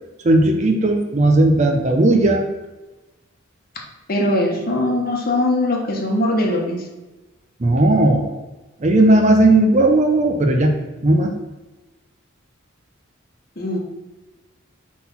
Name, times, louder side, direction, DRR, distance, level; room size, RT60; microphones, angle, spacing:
voice 1, 0.2-2.5 7.6-8.3 8.8-10.7 11.0-11.3, right 2 dB, 35° right, 4 dB, 0.6 m, -15 dB
voice 2, 4.1-6.8 13.6-13.8, left 1 dB, 45° left, 0 dB, 1.1 m, -20 dB
4.2 x 4.0 x 5.5 m, 1.1 s
head